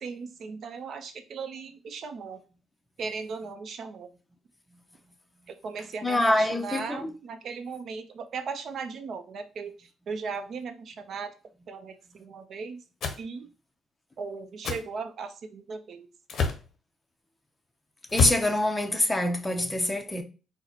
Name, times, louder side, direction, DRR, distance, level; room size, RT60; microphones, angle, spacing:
voice 1, 0.0-2.4 3.0-4.1 5.5-11.3 11.7-12.8 13.2-13.5 14.2-16.1, right 5 dB, 60° right, 0.6 m, -37 dB
voice 2, 6.0-7.1 18.1-20.2, left 1 dB, 10° left, 0.6 m, -25 dB
sound 1, 13.0-13.2 14.6-14.8 16.3-16.6 18.1-18.5, left 5 dB, 60° left, 0.6 m, -27 dB
4.0 x 2.1 x 2.8 m
cardioid pair, 90°, 0 cm